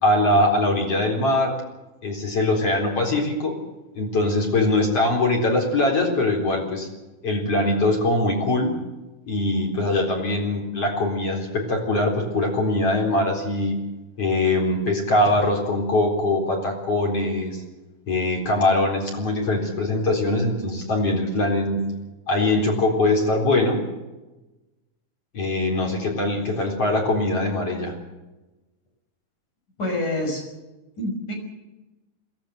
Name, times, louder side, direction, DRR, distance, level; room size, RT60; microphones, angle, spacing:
voice 1, 0.0-1.6 2.0-3.6 4.0-6.9 7.2-8.8 9.3-13.8 14.2-17.6 18.1-21.8 22.3-23.8 25.3-27.9, left 2 dB, 45° left, 0 dB, 5.0 m, -22 dB
voice 2, 29.8-30.5 31.0-31.3, left 1 dB, 65° left, 2 dB, 7.3 m, -26 dB
22.0 x 17.0 x 7.9 m, 1.1 s
omnidirectional pair, 3.8 m